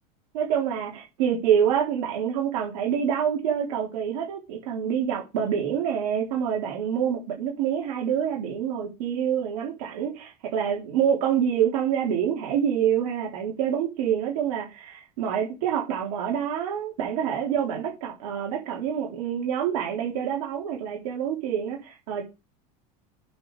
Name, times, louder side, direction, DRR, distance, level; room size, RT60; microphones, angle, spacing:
voice 1, 0.3-22.2, right 8 dB, 75° right, 3.7 m, -26 dB
8.6 x 5.9 x 4.8 m
supercardioid pair, 130°, 21 cm